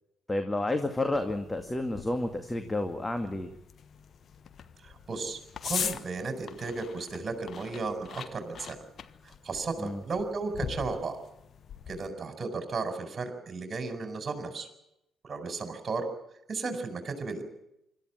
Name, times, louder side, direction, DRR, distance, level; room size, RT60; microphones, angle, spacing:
voice 1, 0.3-3.5 9.8-10.0, left 2 dB, 15° left, 7 dB, 2.2 m, -30 dB
sound 1, 1.1-12.1, left 7 dB, 50° left, 1.3 m, -42 dB
voice 2, 4.8-5.4 5.6-8.8 9.2-11.2 11.9-14.7 15.2-16.1 16.5-17.4, right 4 dB, 40° right, 6 dB, 4.8 m, -34 dB
26.0 x 13.5 x 10.0 m, 0.84 s
figure-of-eight pair, 45°, 0 cm